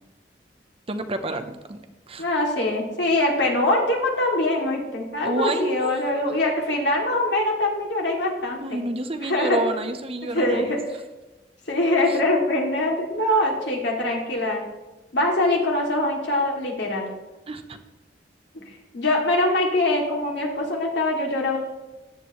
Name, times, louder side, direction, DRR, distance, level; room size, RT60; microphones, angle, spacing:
voice 1, 0.9-2.2 5.2-6.0 8.6-10.8 12.1-12.2 17.5-17.8, right 2 dB, 35° right, 7 dB, 0.8 m, -29 dB
voice 2, 2.2-8.8 9.2-9.6 10.3-10.8 11.7-14.6 15.1-17.1 18.5-18.6 18.9-21.6, left 1 dB, 85° left, -1 dB, 2.6 m, -23 dB
14.5 x 10.5 x 3.2 m, 1.1 s
head